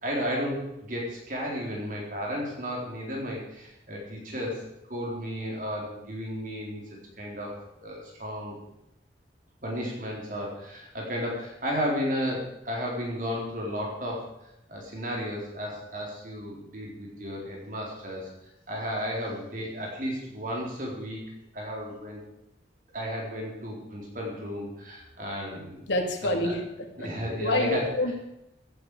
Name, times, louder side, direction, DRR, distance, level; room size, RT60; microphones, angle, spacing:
voice 1, 0.0-4.6 4.9-6.8 7.2-8.5 9.6-14.3 14.7-18.3 18.7-21.2 21.5-22.2 22.9-25.8 26.2-26.6 27.0-27.9, equal, 45° right, -2 dB, 4.1 m, -33 dB
voice 2, 25.9-28.1, left 1 dB, 80° left, 2 dB, 2.9 m, -28 dB
16.0 x 12.5 x 5.0 m, 0.87 s
head